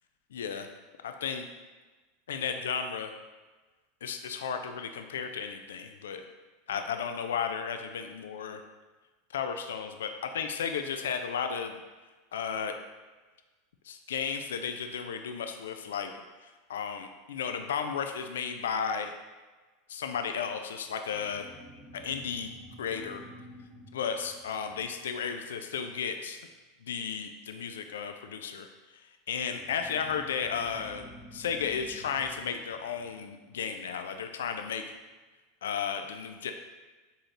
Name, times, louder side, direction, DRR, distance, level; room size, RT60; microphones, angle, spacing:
voice 1, 0.3-0.7 1.0-1.5 2.3-3.1 4.0-6.2 6.7-8.6 9.3-11.8 12.3-12.7 13.9-19.1 19.9-21.4 21.9-22.5 22.8-23.2 23.9-26.4 26.8-28.7 29.3-34.8 35.6-36.5, left 7 dB, 75° left, 6 dB, 0.3 m, -34 dB
sound 1, 21.1-26.0 29.4-34.3, equal, 25° right, 0.8 m, -51 dB
4.0 x 3.7 x 2.9 m, 1.3 s
hypercardioid pair, 85°, 0 cm